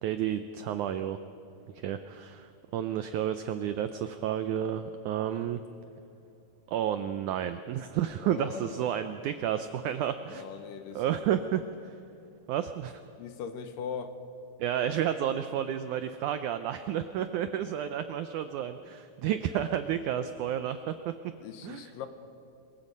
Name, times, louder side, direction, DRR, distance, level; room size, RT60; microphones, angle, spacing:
voice 1, 0.0-1.2 1.8-5.6 6.7-10.5 11.0-12.0 12.5-13.0 14.6-21.1 21.6-22.1, right 10 dB, 85° right, 10 dB, 1.7 m, -31 dB
voice 2, 8.2-9.0 10.3-11.2 13.2-14.2 21.4-22.1, left 7 dB, 75° left, 9 dB, 2.6 m, -40 dB
23.5 x 22.0 x 5.4 m, 2.9 s
omnidirectional pair, 4.2 m